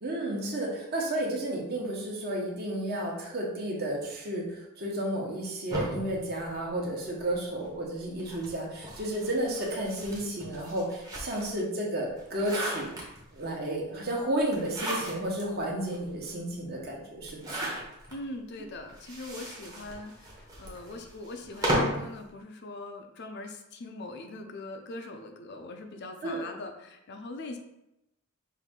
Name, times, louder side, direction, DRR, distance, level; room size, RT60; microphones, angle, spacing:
voice 1, 0.0-12.9 13.3-17.7 26.2-26.4, right 1 dB, 45° right, -2 dB, 1.0 m, -32 dB
sound 1, 5.7-7.3 8.2-11.6 12.1-13.5 14.5-15.4 15.9-16.0 16.2-16.3 17.2-18.2 18.9-22.1, equal, 15° right, 0.9 m, -35 dB
voice 2, 18.1-27.6, left 2 dB, 50° left, 4 dB, 0.5 m, -41 dB
5.5 x 2.6 x 3.7 m, 0.87 s
head